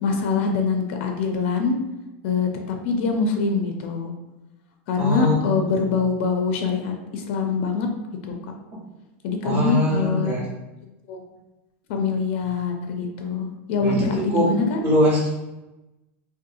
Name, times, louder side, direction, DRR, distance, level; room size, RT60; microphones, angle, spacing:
voice 1, 0.0-1.8 2.2-4.1 4.9-7.9 8.3-8.4 9.2-10.4 11.1-11.2 11.9-14.8, left 4 dB, 60° left, 4 dB, 0.4 m, -24 dB
voice 2, 5.0-5.4 9.4-10.4 13.8-14.5 14.8-15.3, left 1 dB, 35° right, -8 dB, 1.3 m, -21 dB
2.6 x 2.2 x 2.6 m, 1.0 s
supercardioid pair, 135°, 7 cm